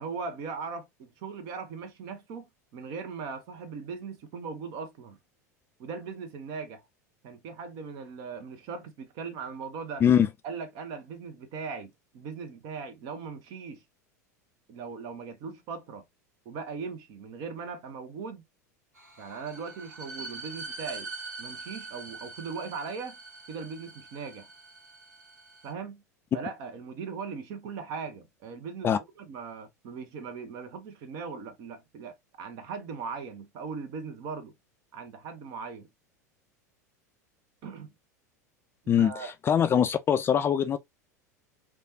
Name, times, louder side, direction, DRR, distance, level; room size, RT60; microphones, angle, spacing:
voice 1, 0.0-5.2 5.8-6.8 7.2-10.0 10.4-13.8 14.7-16.0 16.4-18.4 19.2-21.1 21.4-23.2 23.5-24.5 25.6-26.0 26.3-28.9 29.2-34.5 34.9-35.9 37.6-37.9 39.0-39.3, right 5 dB, 50° right, 0.8 m, -39 dB
sound 1, 19.0-25.7, right 3 dB, 80° right, 1.1 m, -43 dB
voice 2, 38.9-40.8, left 8 dB, 25° left, 0.3 m, -23 dB
3.2 x 2.3 x 2.7 m
figure-of-eight pair, 85°, 9 cm